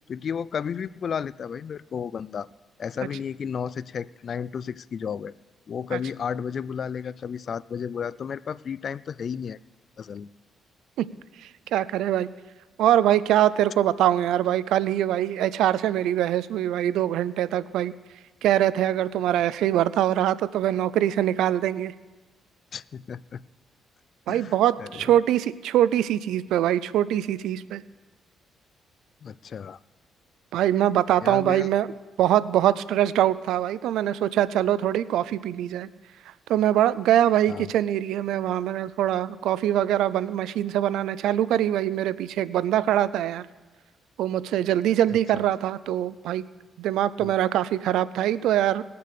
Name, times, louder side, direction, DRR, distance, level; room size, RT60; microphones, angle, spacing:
voice 1, 0.1-2.5 2.8-5.3 5.7-9.6 10.0-10.3 22.7-23.4 24.3-25.1 29.2-29.8 31.2-31.7 37.5-37.7 45.3-45.4 47.2-47.3, left 7 dB, 50° left, 20 dB, 0.3 m, -33 dB
voice 2, 11.4-12.3 12.8-17.9 18.4-21.9 24.3-27.8 30.5-31.9 32.2-35.9 36.5-43.5 44.2-46.4 46.8-48.8, right 12 dB, 85° right, 17 dB, 0.4 m, -23 dB
19.5 x 6.8 x 6.7 m, 1.3 s
cardioid pair, 90°, 0 cm